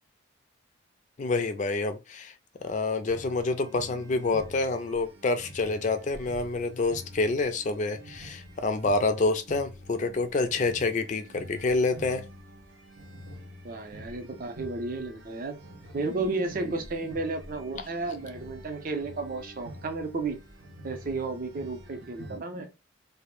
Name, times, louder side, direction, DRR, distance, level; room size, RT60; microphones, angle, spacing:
voice 1, 1.2-2.3 2.6-12.2, left 3 dB, 35° left, 0.3 m, -27 dB
sound 1, 3.0-22.4, equal, 75° right, 0.8 m, -47 dB
voice 2, 13.6-15.6 15.9-20.4 20.8-22.7, right 3 dB, 45° right, 0.4 m, -33 dB
2.1 x 2.0 x 2.9 m
head